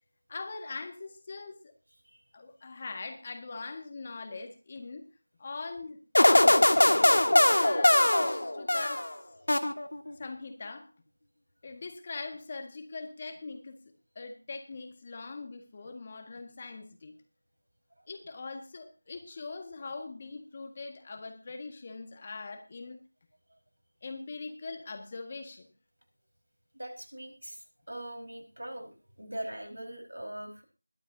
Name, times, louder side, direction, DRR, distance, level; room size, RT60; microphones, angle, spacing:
voice 1, 0.3-1.7 2.3-5.1 5.4-7.1 7.5-9.1 10.2-10.9 11.6-13.8 14.2-17.1 18.1-23.0 24.0-25.7, left 3 dB, 25° left, 6 dB, 1.7 m, -42 dB
sound 1, 6.1-9.1 9.5-10.1, left 1 dB, 75° left, 1.6 m, -22 dB
voice 2, 26.7-27.6 27.9-30.6, right 1 dB, 85° right, 5 dB, 4.8 m, -41 dB
21.5 x 11.0 x 2.8 m, 0.31 s
figure-of-eight pair, 170°, 0 cm